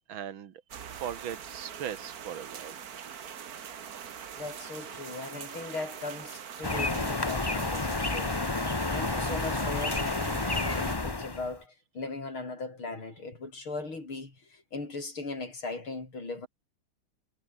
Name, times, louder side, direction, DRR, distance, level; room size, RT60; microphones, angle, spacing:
voice 1, 0.0-2.8 8.9-9.2, right 9 dB, 75° right, 2.1 m, -40 dB
sound 1, 0.7-11.0, right 8 dB, 50° right, 1.7 m, -43 dB
voice 2, 4.4-16.5, left 3 dB, 85° left, 6.8 m, -39 dB
sound 2, 6.6-11.5, left 3 dB, 20° left, 0.7 m, -30 dB
omnidirectional pair, 2.2 m